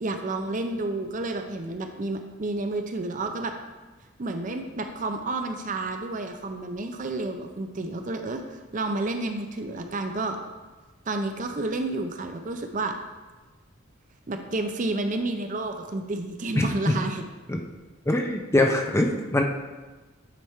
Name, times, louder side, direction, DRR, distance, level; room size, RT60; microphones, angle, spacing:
voice 1, 0.0-3.5 4.2-10.4 11.1-13.0 14.3-17.2, right 2 dB, 40° right, 6 dB, 0.5 m, -30 dB
voice 2, 16.5-17.0 17.5-17.6 18.1-19.4, left 1 dB, 15° left, 3 dB, 0.4 m, -23 dB
9.2 x 3.5 x 4.4 m, 1.2 s
head